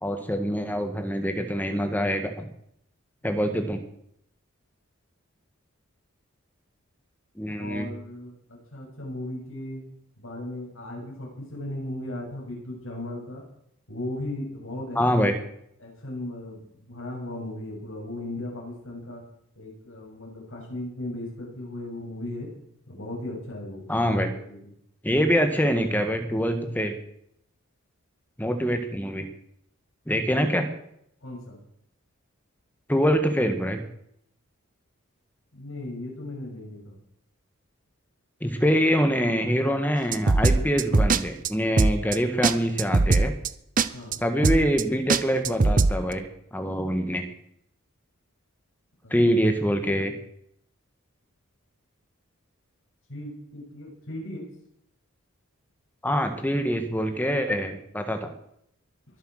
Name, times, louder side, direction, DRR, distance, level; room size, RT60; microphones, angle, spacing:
voice 1, 0.0-2.3 3.2-3.8 7.4-7.9 14.9-15.3 23.9-24.3 25.0-26.9 28.4-29.2 30.1-30.6 32.9-33.8 38.4-43.3 44.2-46.2 46.5-47.2 49.1-50.1 56.0-58.3, equal, 10° left, 6 dB, 1.6 m, -24 dB
voice 2, 7.5-8.3 8.7-9.8 10.2-13.4 13.9-15.3 15.8-19.2 19.6-22.5 22.9-24.7 30.4-30.5 31.2-31.6 35.5-37.0 43.9-44.2 49.0-49.1 53.1-54.4, left 1 dB, 65° left, -2 dB, 7.2 m, -37 dB
sound 1, 40.1-41.2 41.4-41.5 41.8-42.2 42.4-42.5 42.8-43.5 43.8-43.9 44.1-44.2 44.4-44.8 45.1-45.9, right 3 dB, 35° right, 0.6 m, -20 dB
22.5 x 8.1 x 6.5 m, 0.72 s
head